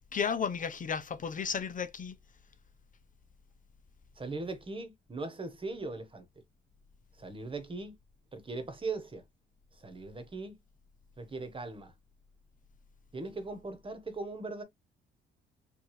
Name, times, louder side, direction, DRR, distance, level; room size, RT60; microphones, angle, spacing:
voice 1, 0.1-2.2, left 6 dB, 40° left, 0.7 m, -33 dB
voice 2, 4.2-6.3 7.2-7.9 8.3-9.2 9.8-10.6 11.2-11.9 13.1-14.6, right 3 dB, 25° right, 1.3 m, -39 dB
4.6 x 2.6 x 3.2 m
cardioid pair, 90°, 20 cm